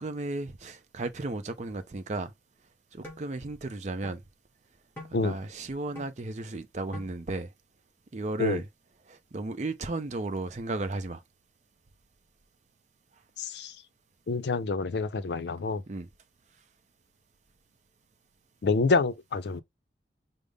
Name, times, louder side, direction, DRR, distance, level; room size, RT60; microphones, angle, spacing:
voice 1, 0.0-2.3 2.9-4.2 5.2-7.5 8.1-8.7 9.1-11.2 15.9-16.1, right 2 dB, 40° right, 0.5 m, -34 dB
sound 1, 3.0-3.3 4.0-4.1 5.0-5.2 5.9-6.1 6.9-7.1, left 1 dB, 10° left, 1.6 m, -43 dB
voice 2, 13.4-13.7 14.3-15.8 18.6-19.6, left 4 dB, 70° left, 0.5 m, -27 dB
5.1 x 2.0 x 3.4 m
head